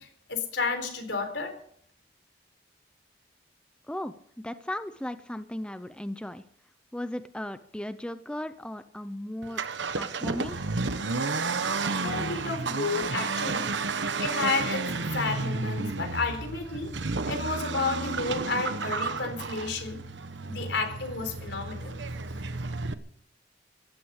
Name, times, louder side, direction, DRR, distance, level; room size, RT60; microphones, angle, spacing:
voice 1, 0.0-1.5 12.0-13.7 14.0-14.9 15.1-16.9 17.2-20.0 20.5-22.0, left 3 dB, 80° left, 7 dB, 4.0 m, -31 dB
voice 2, 3.9-6.4 6.9-10.7, left 1 dB, 5° left, 11 dB, 0.6 m, -36 dB
Accelerating revving vroom, 9.4-22.9, right 3 dB, 85° right, 1.1 m, -32 dB
16.0 x 12.0 x 6.6 m, 0.63 s
head